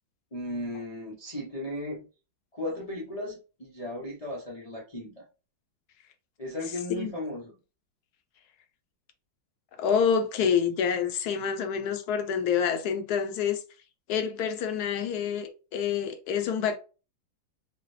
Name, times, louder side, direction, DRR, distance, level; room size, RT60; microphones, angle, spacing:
voice 1, 0.3-2.1 2.5-5.2 6.4-7.5, left 1 dB, 50° left, 0.4 m, -36 dB
voice 2, 9.8-13.6 14.1-16.8, left 7 dB, 70° left, 1.0 m, -27 dB
4.7 x 2.2 x 3.1 m
omnidirectional pair, 2.0 m